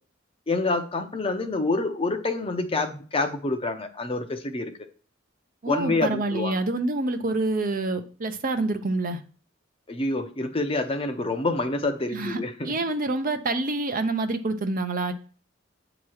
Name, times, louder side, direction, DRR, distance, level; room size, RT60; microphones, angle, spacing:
voice 1, 0.5-4.7 5.7-6.5 9.9-12.8, left 2 dB, 30° left, 0.7 m, -27 dB
voice 2, 5.6-9.2 12.1-15.1, right 2 dB, 45° right, 0.6 m, -27 dB
8.4 x 3.0 x 6.3 m
head